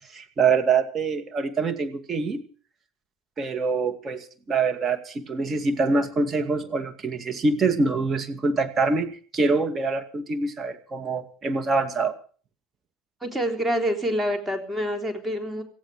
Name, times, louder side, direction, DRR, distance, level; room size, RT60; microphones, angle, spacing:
voice 1, 0.1-2.4 3.4-12.1, right 4 dB, 35° right, 8 dB, 2.3 m, -25 dB
voice 2, 13.2-15.6, equal, 15° right, 4 dB, 3.5 m, -26 dB
18.0 x 15.5 x 5.0 m, 0.42 s
hypercardioid pair, 75°, 0 cm